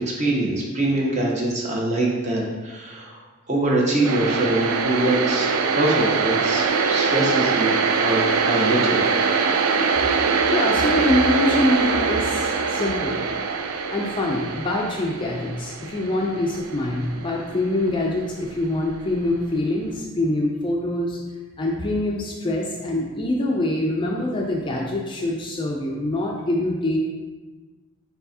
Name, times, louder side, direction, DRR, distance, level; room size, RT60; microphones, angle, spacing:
voice 1, 0.0-3.2 3.5-9.0, right 1 dB, 30° right, -3 dB, 0.8 m, -24 dB
sound 1, 4.0-17.9, right 5 dB, 70° right, 0.3 m, -23 dB
voice 2, 10.5-13.2 13.9-21.2 21.6-27.0, left 1 dB, 20° left, -1 dB, 0.3 m, -24 dB
4.5 x 4.1 x 2.7 m, 1.3 s
head